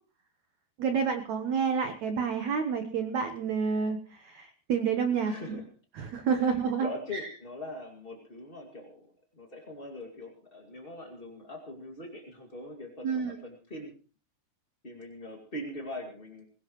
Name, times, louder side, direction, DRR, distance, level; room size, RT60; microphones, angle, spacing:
voice 1, 0.8-5.6 6.0-7.2 13.0-13.4, right 6 dB, 70° right, 7 dB, 1.7 m, -29 dB
voice 2, 5.2-5.7 6.2-13.9 14.8-16.4, left 1 dB, 25° left, 0 dB, 1.3 m, -42 dB
22.0 x 18.5 x 3.1 m, 0.39 s
omnidirectional pair, 4.9 m